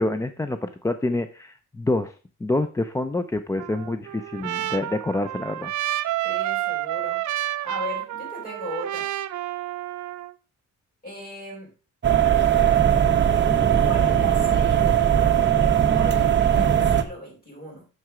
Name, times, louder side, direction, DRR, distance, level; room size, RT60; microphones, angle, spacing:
voice 1, 0.0-2.1 2.4-5.7, left 2 dB, 10° left, 10 dB, 0.3 m, -27 dB
Trumpet, 3.6-10.3, right 14 dB, 65° right, 0.6 m, -30 dB
voice 2, 6.2-9.1 11.0-11.7 13.8-17.9, equal, 30° left, -1 dB, 5.4 m, -38 dB
sound 1, 12.0-17.0, right 9 dB, 35° right, 0.9 m, -19 dB
7.6 x 6.5 x 4.8 m, 0.34 s
wide cardioid pair, 180°, 32 cm